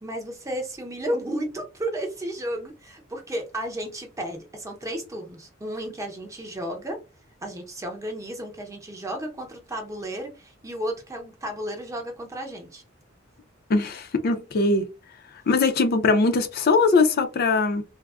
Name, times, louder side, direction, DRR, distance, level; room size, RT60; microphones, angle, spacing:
voice 1, 0.0-7.0 7.4-12.8, right 1 dB, 15° right, 0.7 m, -33 dB
voice 2, 13.7-14.9 15.5-17.8, left 3 dB, 50° left, 0.4 m, -21 dB
3.4 x 2.0 x 2.3 m
head